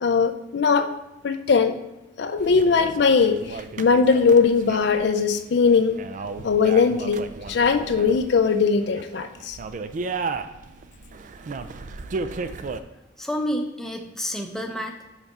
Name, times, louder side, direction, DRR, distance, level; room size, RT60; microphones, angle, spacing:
voice 1, 0.0-0.9 1.2-1.7 2.2-6.0 6.4-7.2 7.5-9.6, left 5 dB, 65° left, 9 dB, 0.4 m, -20 dB
sound 1, 2.4-12.8, right 4 dB, 45° right, 0.4 m, -35 dB
voice 2, 13.2-15.1, equal, 5° left, 2 dB, 0.6 m, -29 dB
5.8 x 4.0 x 5.4 m, 0.98 s
head